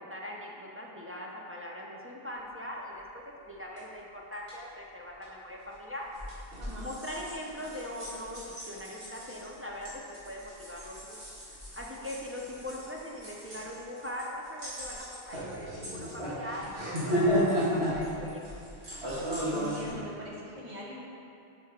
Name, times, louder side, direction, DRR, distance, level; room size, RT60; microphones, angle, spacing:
voice 1, 0.0-6.1 6.8-11.2 11.7-18.4, left 1 dB, 20° right, -3 dB, 0.4 m, -41 dB
sound 1, 3.8-3.9 4.3-4.5 5.2-5.3 6.1-19.9, equal, 75° right, 1.9 m, -34 dB
voice 2, 19.4-21.0, left 1 dB, 45° right, -4 dB, 1.2 m, -43 dB
6.5 x 5.9 x 3.6 m, 2.6 s
omnidirectional pair, 1.1 m